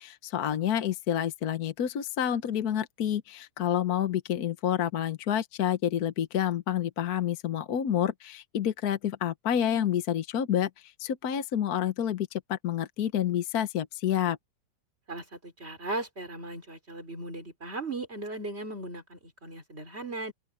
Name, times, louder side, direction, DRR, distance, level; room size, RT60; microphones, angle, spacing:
voice 1, 0.0-10.7 11.0-14.4, left 10 dB, 60° left, 1.4 m, -29 dB
voice 2, 15.1-20.3, right 2 dB, 35° right, 5.1 m, -37 dB
open air
omnidirectional pair, 1.9 m